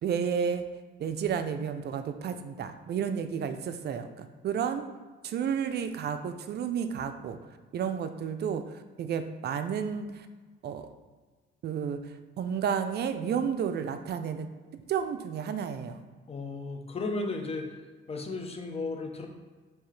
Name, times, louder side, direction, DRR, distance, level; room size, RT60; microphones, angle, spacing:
voice 1, 0.0-0.7 1.0-4.9 5.2-7.4 7.7-10.3 10.6-10.9 11.6-16.0, right 7 dB, 55° right, 9 dB, 0.4 m, -32 dB
voice 2, 16.3-17.7 18.1-19.3, left 3 dB, 30° left, 3 dB, 0.7 m, -34 dB
5.4 x 2.9 x 3.2 m, 1.4 s
cardioid pair, 90°, 20 cm